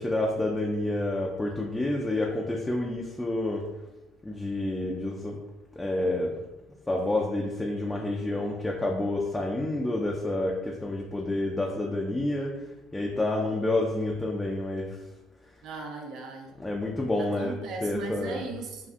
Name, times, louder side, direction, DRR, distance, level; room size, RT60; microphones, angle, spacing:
voice 1, 0.0-3.7 4.2-5.4 5.8-6.4 6.9-15.1 16.6-18.5, left 2 dB, 15° left, -2 dB, 0.4 m, -29 dB
voice 2, 15.6-16.5 17.4-18.9, right 4 dB, 60° right, 1 dB, 0.5 m, -37 dB
2.4 x 2.3 x 2.5 m, 1.0 s
hypercardioid pair, 65°, 0 cm